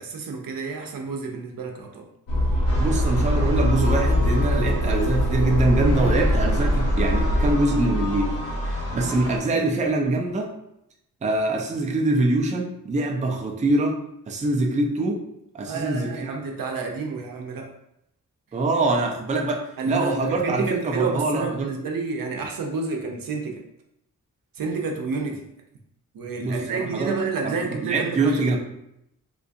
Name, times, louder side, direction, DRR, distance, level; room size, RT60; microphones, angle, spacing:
voice 1, 0.0-2.0 15.7-17.7 19.8-23.6 24.5-25.4 26.1-28.6, right 4 dB, 80° right, 2 dB, 0.6 m, -29 dB
sound 1, 2.3-7.6, equal, 75° left, 0.8 m, -23 dB
sound 2, 2.7-9.4, equal, 45° left, 0.9 m, -28 dB
voice 2, 2.8-10.5 11.2-14.0 14.3-15.2 15.5-16.3 18.5-21.7 26.4-27.1 27.4-28.6, right 2 dB, 20° right, 0 dB, 0.4 m, -24 dB
3.8 x 2.3 x 2.5 m, 0.79 s
wide cardioid pair, 120°, 34 cm